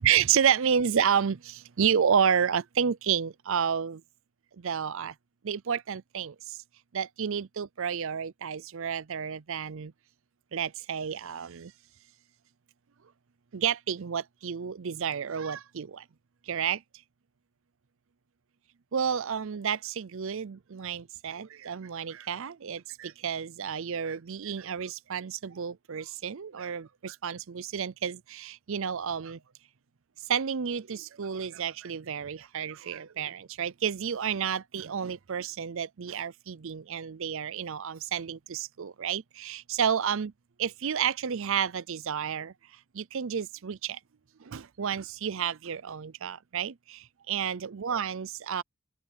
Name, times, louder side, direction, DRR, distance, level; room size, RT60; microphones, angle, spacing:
voice 1, 0.0-4.0 4.6-5.1 5.4-6.6 6.9-9.9 10.5-11.7 13.5-16.0 16.5-16.8 18.9-29.4 30.3-40.3 40.6-42.5 42.9-44.0 44.4-48.6, right 7 dB, 60° right, 0.5 m, -30 dB
open air
head